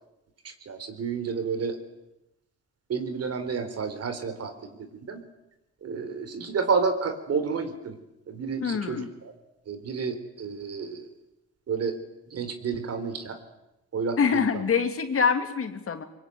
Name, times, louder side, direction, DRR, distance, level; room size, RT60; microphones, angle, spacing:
voice 1, 0.7-1.8 2.9-4.5 4.8-5.2 5.8-7.9 8.3-9.3 9.7-11.1 11.7-12.0 12.3-13.4 13.9-14.6, right 5 dB, 55° right, 9 dB, 4.0 m, -30 dB
voice 2, 8.6-9.1 14.2-16.0, left 6 dB, 45° left, 7 dB, 2.9 m, -25 dB
24.0 x 22.0 x 9.4 m, 0.93 s
cardioid pair, 90°, 30 cm